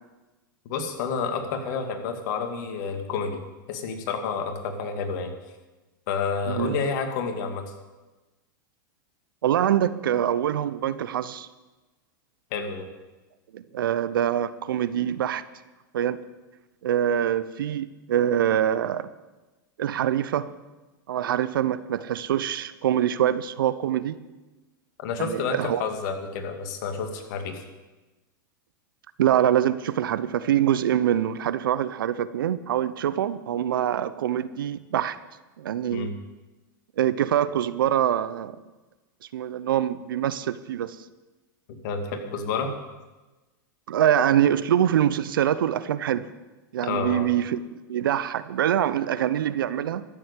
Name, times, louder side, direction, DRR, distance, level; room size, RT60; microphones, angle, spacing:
voice 1, 0.7-3.4 3.7-5.3 6.1-7.6 12.5-12.9 25.0-27.6 35.9-36.1 41.8-42.7 46.8-47.3, left 5 dB, 60° left, 5 dB, 2.4 m, -29 dB
voice 2, 9.4-11.5 13.5-15.4 15.9-16.2 16.8-19.1 19.8-20.5 21.1-24.1 25.2-25.8 29.2-35.2 35.6-36.1 37.0-38.5 39.3-41.0 43.9-46.3 46.7-47.6 47.9-50.1, right 10 dB, 80° right, 15 dB, 0.7 m, -24 dB
13.5 x 7.6 x 8.4 m, 1.1 s
hypercardioid pair, 105°, 11 cm